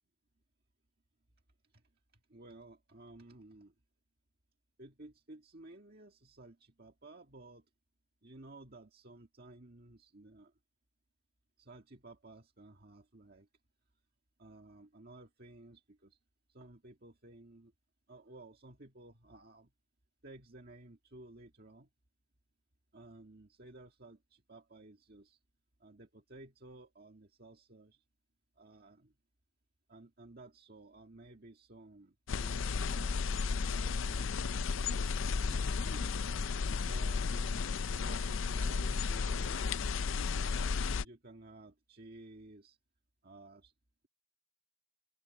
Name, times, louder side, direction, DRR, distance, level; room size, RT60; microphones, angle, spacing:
voice 1, 2.1-3.7 4.8-7.7 8.2-10.5 11.6-13.5 14.4-16.2 16.5-17.7 18.1-19.7 20.2-21.9 22.9-25.4 25.8-28.0 28.6-29.1 29.9-34.4 35.4-36.2 36.8-39.8 40.4-42.8 43.2-43.7, right 2 dB, 45° right, 1.7 m, -55 dB
sound 1, 32.3-41.0, left 5 dB, 65° left, 0.5 m, -33 dB
open air
head